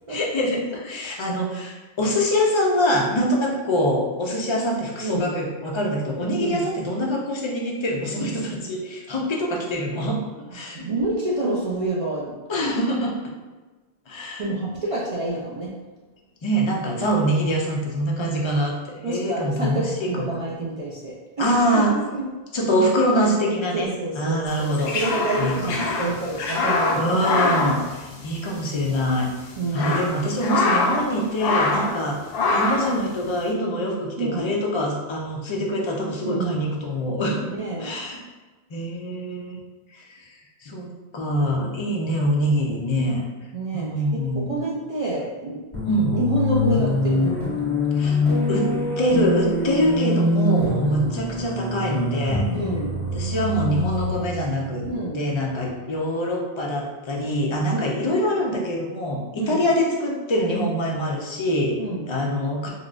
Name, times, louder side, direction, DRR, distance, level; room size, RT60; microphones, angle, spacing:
voice 1, 0.1-10.3 10.5-10.9 12.5-13.3 14.1-14.4 16.4-18.8 19.1-20.3 21.4-22.0 22.5-23.9 24.2-25.0 25.4-25.9 26.9-29.3 29.7-32.2 32.5-37.5 37.8-38.2 38.7-39.6 39.9-40.2 40.6-40.9 41.1-43.2 43.7-44.5 45.8-46.2 48.0-48.2 48.5-52.4 53.1-54.8 55.1-61.8 62.1-62.7, equal, 45° left, -2 dB, 0.4 m, -24 dB
voice 2, 5.0-5.3 6.4-6.7 10.7-12.4 14.4-15.8 18.2-18.5 19.0-22.3 23.7-27.5 29.6-30.3 34.2-34.5 36.2-36.7 37.5-37.9 43.5-45.6 46.1-47.4 50.0-50.2 50.8-51.2 52.5-53.2 54.9-55.3 57.7-58.0 59.4-59.7 61.8-62.2, right 2 dB, 55° right, -6 dB, 0.3 m, -28 dB
sound 1, 24.6-28.6 28.9-29.0 29.5-31.1 31.4-32.0 32.3-33.0, left 3 dB, 65° left, 0.7 m, -24 dB
sound 2, 45.7-55.6, left 2 dB, ahead, 1.3 m, -24 dB
3.8 x 2.3 x 2.4 m, 1.3 s
omnidirectional pair, 1.1 m